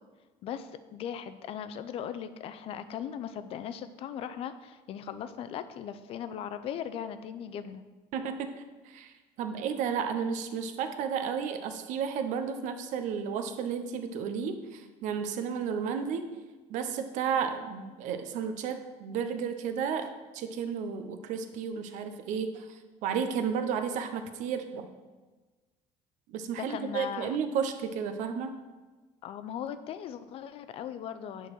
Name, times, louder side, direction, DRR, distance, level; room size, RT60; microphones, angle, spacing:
voice 1, 0.4-7.8 26.5-27.4 29.2-31.5, left 9 dB, 45° left, 12 dB, 0.4 m, -38 dB
voice 2, 8.1-8.5 8.8-16.3 16.7-24.9 26.3-28.5, right 7 dB, 60° right, 8 dB, 0.7 m, -33 dB
9.1 x 3.9 x 6.1 m, 1.3 s
cardioid pair, 170°, 14 cm